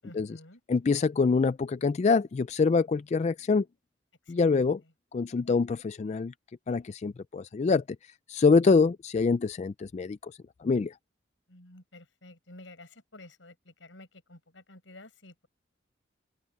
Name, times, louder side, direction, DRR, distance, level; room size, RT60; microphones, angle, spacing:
voice 1, 0.0-0.6 4.3-4.9 11.5-15.5, left 2 dB, 85° left, 7.0 m, -51 dB
voice 2, 0.7-3.6 4.3-4.8 5.1-6.3 6.7-7.8 8.3-10.2 10.6-10.9, left 4 dB, 35° left, 0.3 m, -25 dB
open air
head